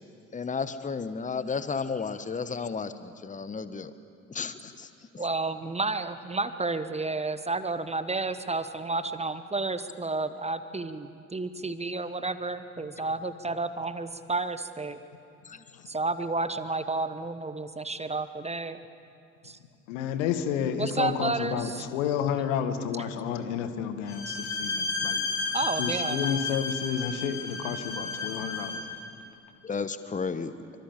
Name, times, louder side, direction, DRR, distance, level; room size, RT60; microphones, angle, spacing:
voice 1, 0.3-3.9 4.3-4.9 5.1-5.2 15.4-15.6 29.6-30.5, left 5 dB, 20° left, 12 dB, 1.3 m, -33 dB
voice 2, 5.2-15.0 15.9-18.8 19.4-19.6 20.8-21.9 24.3-24.4 25.5-26.5, right 3 dB, 15° right, 12 dB, 1.2 m, -31 dB
voice 3, 19.9-25.3 25.8-28.8, left 8 dB, 65° left, 9 dB, 1.9 m, -30 dB
Bowed string instrument, 24.1-28.9, left 3 dB, 45° left, 6.9 m, -32 dB
27.5 x 25.0 x 7.3 m, 2.5 s
figure-of-eight pair, 55°, 41 cm